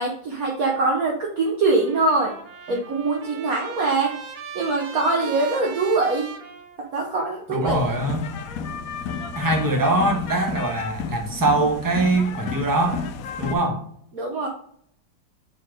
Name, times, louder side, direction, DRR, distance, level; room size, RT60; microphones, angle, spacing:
voice 1, 0.0-2.3 2.7-4.2 4.5-6.3 6.9-7.8 14.1-14.5, right 3 dB, 55° right, 0 dB, 1.3 m, -23 dB
Trumpet, 1.7-7.3, right 6 dB, 70° right, 1.6 m, -39 dB
voice 2, 7.5-8.3 9.3-13.0 13.4-13.9, right 2 dB, 15° right, 2 dB, 0.8 m, -22 dB
sound 1, 7.7-13.5, left 5 dB, 70° left, 0.8 m, -32 dB
5.5 x 4.2 x 5.0 m, 0.63 s
omnidirectional pair, 2.2 m